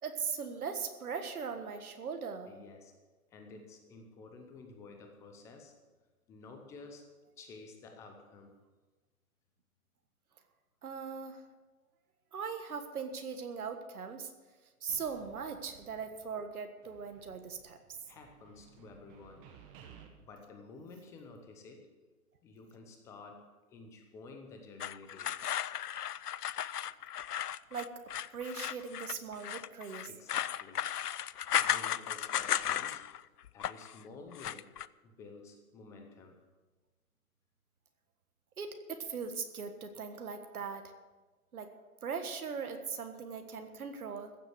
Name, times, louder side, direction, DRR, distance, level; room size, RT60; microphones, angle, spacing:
voice 1, 0.0-2.5 10.8-11.4 12.3-14.3 14.8-17.8 27.3-27.4 27.7-28.0 28.3-30.1 38.6-40.9 41.5-41.7 42.0-44.4, right 6 dB, 70° right, 7 dB, 1.6 m, -40 dB
voice 2, 2.5-2.9 3.3-5.8 6.3-7.1 7.4-8.5 14.9-15.0 18.0-19.4 20.2-21.9 22.4-25.4 30.0-30.8 31.5-33.0 33.5-34.7 35.0-36.4, left 3 dB, 5° left, 4 dB, 0.7 m, -52 dB
sound 1, 14.9-16.6 16.8-20.1, right 8 dB, 15° right, 1.1 m, -58 dB
sound 2, 24.8-33.2 33.5-33.9 34.3-34.9, left 10 dB, 90° left, 0.6 m, -35 dB
15.0 x 7.7 x 7.6 m, 1.2 s
hypercardioid pair, 145°, 45 cm